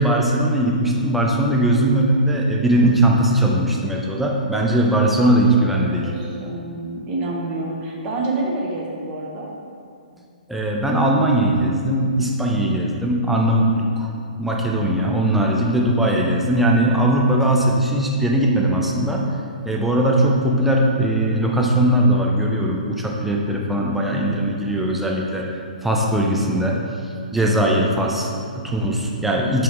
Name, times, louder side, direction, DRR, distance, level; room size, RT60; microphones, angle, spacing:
voice 1, 0.0-6.1 10.5-14.1 14.4-19.2 19.6-25.5 25.8-26.8 27.3-29.6, right 1 dB, 5° right, -2 dB, 0.6 m, -19 dB
voice 2, 5.7-9.5, right 2 dB, 25° right, -2 dB, 1.1 m, -28 dB
5.9 x 3.6 x 4.7 m, 2.3 s
figure-of-eight pair, 125°, 5 cm